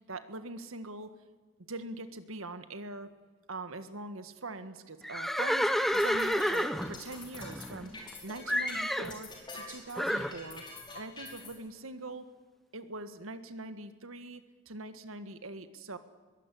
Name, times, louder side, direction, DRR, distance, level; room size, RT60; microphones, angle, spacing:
voice 1, 0.1-1.1 1.7-3.1 3.5-7.9 8.2-10.6 10.9-12.3 12.7-16.0, right 2 dB, 85° right, 10 dB, 1.7 m, -43 dB
Livestock farm animals working animals, 5.0-8.1 8.5-9.2 10.0-10.3, equal, ahead, 0.8 m, -30 dB
sound 1, 5.8-11.5, left 3 dB, 20° left, 5.3 m, -46 dB
22.0 x 16.5 x 9.9 m, 1.4 s
head